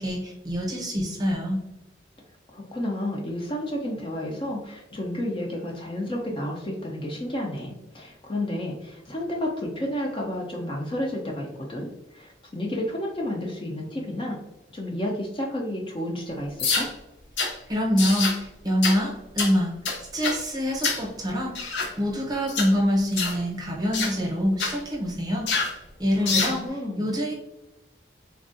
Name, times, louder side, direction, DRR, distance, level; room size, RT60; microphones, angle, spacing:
voice 1, 0.0-1.6 17.7-19.7 20.1-25.7 26.0-26.6 27.0-27.3, equal, 20° right, -3 dB, 0.7 m, -25 dB
voice 2, 2.5-14.4 14.7-16.9 26.2-27.0, left 1 dB, 30° left, -1 dB, 0.4 m, -31 dB
sound 1, 16.6-16.9 17.4-17.5 18.0-18.4 18.8-19.0 19.4-19.5 19.9-20.4 20.8-21.1 21.6-21.9 22.5-22.7 23.2-23.4 23.9-24.2 24.6-24.8 25.5-25.8 26.3-26.6, left 4 dB, 85° left, 0.6 m, -26 dB
3.4 x 2.3 x 2.5 m, 0.94 s
head